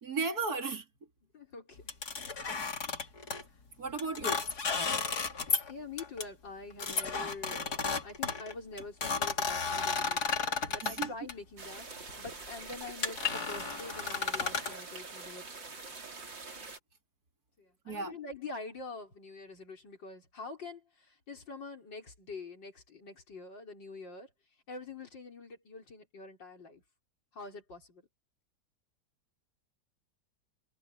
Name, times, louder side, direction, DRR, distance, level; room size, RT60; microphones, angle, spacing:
voice 1, 0.0-0.8 3.8-4.5 10.8-11.1 17.9-18.2, right 4 dB, 55° right, 3.1 m, -35 dB
voice 2, 1.3-1.8 5.7-10.4 10.7-15.5 17.6-24.3 24.7-26.8 27.3-28.1, left 3 dB, 80° left, 5.4 m, -45 dB
sound 1, 1.9-3.4 4.0-5.7 6.0-6.2 6.8-11.3 12.1-12.3 12.7-12.8 13.0-14.8, left 5 dB, 60° left, 2.9 m, -33 dB
sound 2, 11.6-16.8, right 3 dB, 90° right, 4.4 m, -45 dB
omnidirectional pair, 1.9 m